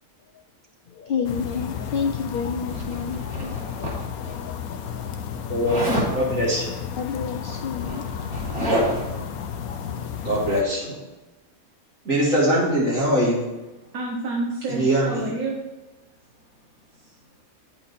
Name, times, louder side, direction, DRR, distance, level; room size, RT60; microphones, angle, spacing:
voice 1, 0.9-5.5 7.0-8.1, left 6 dB, 70° left, 5 dB, 0.5 m, -31 dB
sound 1, 1.2-10.6, left 7 dB, 85° left, 1.2 m, -33 dB
Zipper (clothing), 2.7-4.3 5.7-6.1 7.3-7.4 7.7-9.2, equal, 45° right, 3.8 m, -27 dB
voice 2, 5.5-5.8 6.1-6.6 10.2-11.0 12.0-13.4 14.7-15.3, equal, 65° right, -7 dB, 2.6 m, -22 dB
voice 3, 13.8-15.6 16.9-17.2, right 2 dB, 85° right, -1 dB, 1.6 m, -29 dB
9.1 x 7.7 x 4.3 m, 1.1 s
omnidirectional pair, 1.5 m